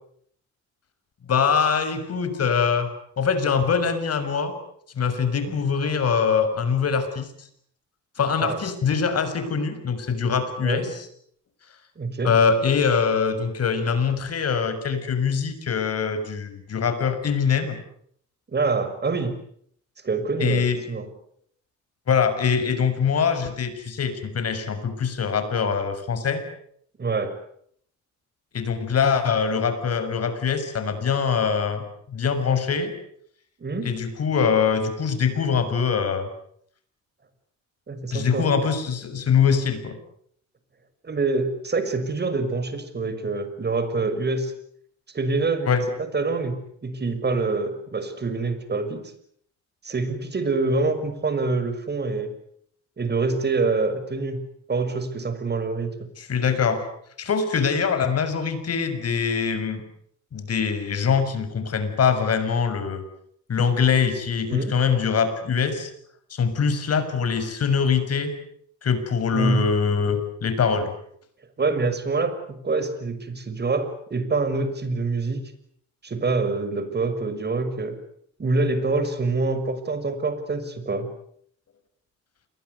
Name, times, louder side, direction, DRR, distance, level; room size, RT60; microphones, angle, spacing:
voice 1, 1.2-2.9 3.2-4.6 4.9-7.3 8.2-11.1 12.2-17.8 20.4-20.8 22.1-26.4 28.5-32.9 33.8-36.3 38.1-40.0 45.7-45.8 56.2-56.8 57.2-59.8 60.3-63.0 63.5-65.9 66.3-68.3 68.8-70.9, left 6 dB, 55° left, 10 dB, 6.4 m, -23 dB
voice 2, 12.0-12.3 18.5-19.3 20.0-21.1 27.0-27.4 33.6-33.9 37.9-38.5 41.0-44.5 45.1-45.7 46.0-49.0 49.8-52.3 53.0-54.4 54.7-55.9 64.5-64.8 69.3-69.6 71.6-75.4 76.0-78.0 78.4-81.1, right 3 dB, 35° right, 10 dB, 6.3 m, -26 dB
29.0 x 23.0 x 8.3 m, 0.67 s
cardioid pair, 90°, 30 cm